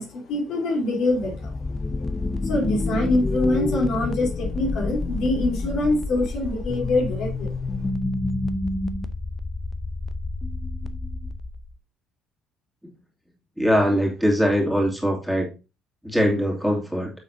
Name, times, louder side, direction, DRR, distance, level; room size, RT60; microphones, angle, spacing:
voice 1, 0.0-1.5 2.4-7.5, left 2 dB, 60° left, -1 dB, 3.7 m, -24 dB
sound 1, 1.1-11.7, left 2 dB, 25° left, 0.8 m, -28 dB
voice 2, 13.6-15.5 16.0-17.1, equal, ahead, -1 dB, 2.7 m, -21 dB
9.6 x 7.4 x 2.8 m, 0.29 s
figure-of-eight pair, 50°, 0 cm